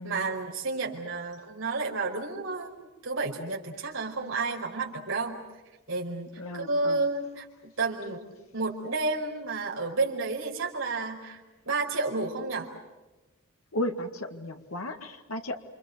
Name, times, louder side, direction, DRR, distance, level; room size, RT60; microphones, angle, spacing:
voice 1, 0.0-5.4 5.9-6.3 6.5-12.7, right 3 dB, 70° right, -1 dB, 4.9 m, -31 dB
voice 2, 6.4-7.0 13.7-15.6, left 1 dB, 90° left, 5 dB, 2.1 m, -34 dB
29.0 x 26.5 x 6.8 m, 1.1 s
head